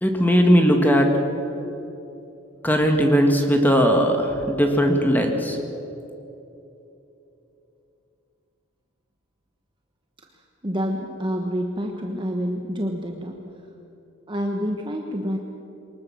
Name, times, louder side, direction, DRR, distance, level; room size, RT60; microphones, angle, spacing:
voice 1, 0.0-1.1 2.6-5.6, equal, 10° left, 3 dB, 1.7 m, -18 dB
voice 2, 10.6-13.4 14.3-15.4, equal, 25° right, 2 dB, 1.3 m, -27 dB
23.5 x 20.0 x 7.2 m, 3.0 s
head